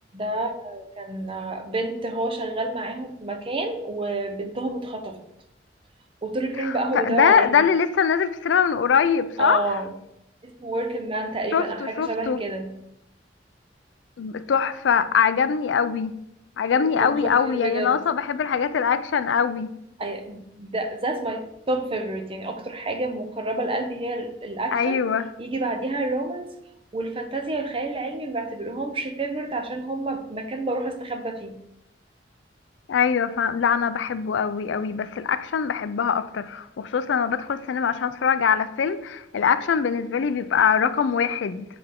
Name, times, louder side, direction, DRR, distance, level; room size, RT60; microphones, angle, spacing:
voice 1, 0.1-5.2 6.2-7.6 9.4-9.9 10.4-12.8 16.8-18.0 20.0-25.0 25.4-26.5 26.9-31.6, right 2 dB, 30° right, 5 dB, 0.7 m, -29 dB
voice 2, 6.6-9.6 11.5-12.4 14.2-16.1 16.6-19.7 24.7-25.3 32.9-41.7, left 7 dB, 75° left, 12 dB, 0.4 m, -22 dB
8.0 x 3.4 x 3.6 m, 0.80 s
head